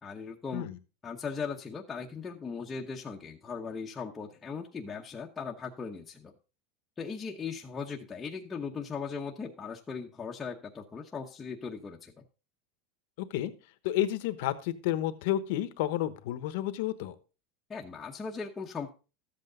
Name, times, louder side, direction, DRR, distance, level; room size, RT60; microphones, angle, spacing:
voice 1, 0.0-0.7 1.0-6.3 7.0-12.1 17.7-18.9, left 5 dB, 15° left, -2 dB, 0.9 m, -38 dB
voice 2, 13.2-13.5 13.8-17.1, left 13 dB, 65° left, 12 dB, 1.1 m, -31 dB
13.0 x 7.9 x 3.9 m, 0.33 s
supercardioid pair, 155°, 0 cm